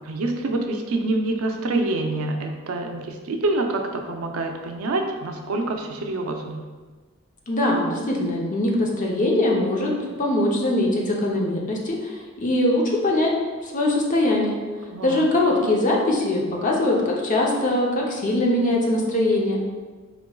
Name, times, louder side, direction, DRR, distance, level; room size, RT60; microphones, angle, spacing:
voice 1, 0.1-6.7 14.9-15.3, right 2 dB, 85° right, 4 dB, 0.5 m, -26 dB
voice 2, 7.5-9.9 10.2-13.3 13.6-14.6 15.0-19.6, left 1 dB, 40° left, -1 dB, 0.6 m, -22 dB
5.0 x 2.9 x 2.3 m, 1.4 s
head